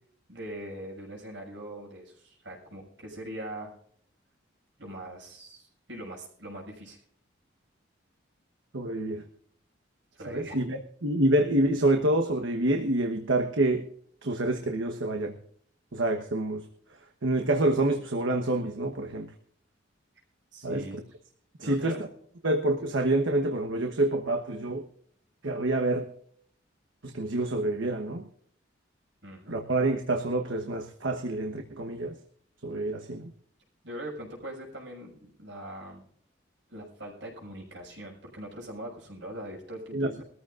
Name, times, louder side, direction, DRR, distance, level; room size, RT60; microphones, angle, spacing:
voice 1, 0.3-3.7 4.8-7.0 10.1-10.6 20.5-21.0 21.6-22.0 29.2-29.6 33.8-36.0 36.7-40.2, right 1 dB, 70° right, -2 dB, 6.2 m, -41 dB
voice 2, 8.7-9.2 10.3-13.8 14.2-15.3 15.9-16.6 17.2-19.3 20.6-20.9 21.6-22.1 22.4-24.9 25.4-26.1 27.0-28.3 29.5-32.1 32.6-33.3 39.9-40.2, right 1 dB, 85° right, 4 dB, 1.2 m, -27 dB
22.0 x 14.0 x 2.5 m, 0.63 s
head